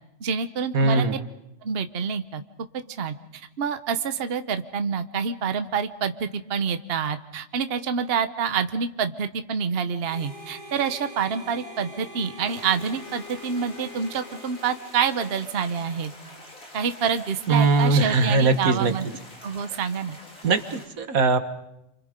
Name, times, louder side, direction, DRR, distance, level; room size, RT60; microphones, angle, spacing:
voice 1, 0.2-1.1 1.6-2.4 2.9-16.1 16.7-19.1 19.4-20.2, right 6 dB, 50° right, 9 dB, 1.2 m, -27 dB
voice 2, 0.7-1.2 17.5-18.9 20.4-21.4, right 3 dB, 90° right, 9 dB, 1.9 m, -20 dB
Harmonica, 10.0-16.4, left 1 dB, 40° left, 6.5 m, -44 dB
sound 1, 12.4-20.9, left 1 dB, 90° left, 4.8 m, -47 dB
29.0 x 25.0 x 5.2 m, 0.86 s
omnidirectional pair, 1.4 m